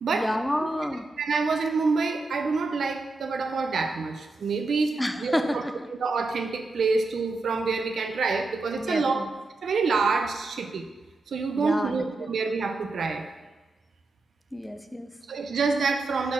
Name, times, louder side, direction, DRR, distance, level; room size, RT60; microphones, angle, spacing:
voice 1, 0.1-1.1 5.0-5.7 8.8-9.3 11.6-12.0 14.5-15.1, left 1 dB, 5° left, 7 dB, 0.4 m, -29 dB
voice 2, 1.2-5.6 6.0-9.2 9.6-10.9 11.3-13.2 15.3-16.3, right 4 dB, 70° right, 6 dB, 0.6 m, -27 dB
4.3 x 4.2 x 5.7 m, 1.2 s
wide cardioid pair, 125°, 0 cm